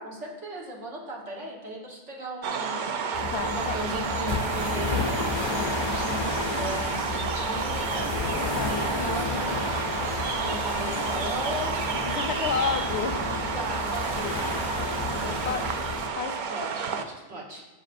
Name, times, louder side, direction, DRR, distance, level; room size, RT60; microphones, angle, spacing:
voice 1, 0.0-2.9 3.4-8.1 8.6-9.5 10.3-11.8 13.5-15.8 16.5-17.7, right 1 dB, 85° right, -2 dB, 1.7 m, -37 dB
sound 1, 2.4-17.0, right 5 dB, 55° right, 0.6 m, -30 dB
sound 2, 3.1-16.1, left 4 dB, 45° left, 0.3 m, -32 dB
voice 2, 3.3-3.8 8.6-9.2 12.0-13.2 15.5-15.6 16.2-16.4, left 6 dB, 75° left, 10 dB, 0.9 m, -30 dB
14.5 x 5.0 x 2.6 m, 1.2 s
omnidirectional pair, 1.2 m